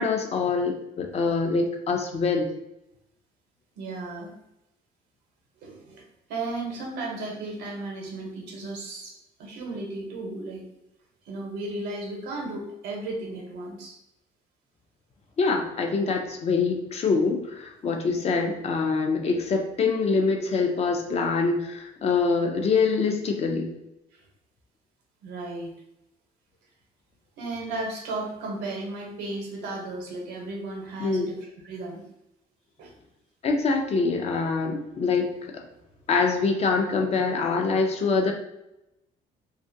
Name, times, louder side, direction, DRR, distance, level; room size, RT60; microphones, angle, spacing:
voice 1, 0.0-2.5 15.4-23.7 31.0-31.3 33.4-35.3 35.5-35.6 36.1-38.3, left 4 dB, 40° left, 3 dB, 0.4 m, -24 dB
voice 2, 3.8-4.3 5.6-6.0 6.3-9.1 9.4-10.6 11.2-14.0 24.1-24.2 25.2-25.7 27.4-32.0 32.8-32.9, right 2 dB, 85° right, -1 dB, 0.8 m, -34 dB
2.4 x 2.1 x 2.6 m, 0.86 s
cardioid pair, 110°, 17 cm